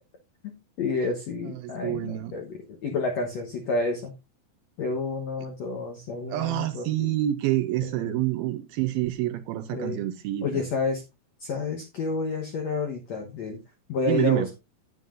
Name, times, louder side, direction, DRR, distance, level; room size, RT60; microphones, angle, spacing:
voice 1, 0.4-4.1 4.8-7.2 7.8-8.2 9.7-10.0 10.4-11.0 11.4-13.6 13.9-14.6, left 3 dB, 75° left, 1.5 m, -30 dB
voice 2, 1.6-2.3 6.3-10.5 14.1-14.5, right 14 dB, 80° right, 2.2 m, -27 dB
11.0 x 9.4 x 2.5 m
omnidirectional pair, 4.8 m